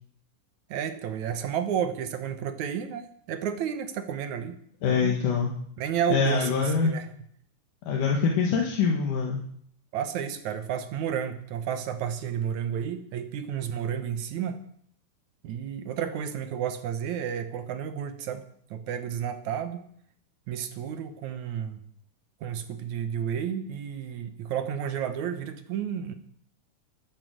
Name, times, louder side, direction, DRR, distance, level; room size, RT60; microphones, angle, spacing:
voice 1, 0.7-4.6 4.9-5.2 5.8-7.1 9.9-14.6 15.4-18.4 18.7-19.8 20.5-21.8 22.4-26.1, right 8 dB, 65° right, 9 dB, 2.3 m, -31 dB
voice 2, 4.8-5.5 6.1-6.9 7.9-9.4, left 5 dB, 70° left, 0 dB, 3.3 m, -24 dB
12.5 x 10.0 x 7.8 m, 0.65 s
omnidirectional pair, 3.9 m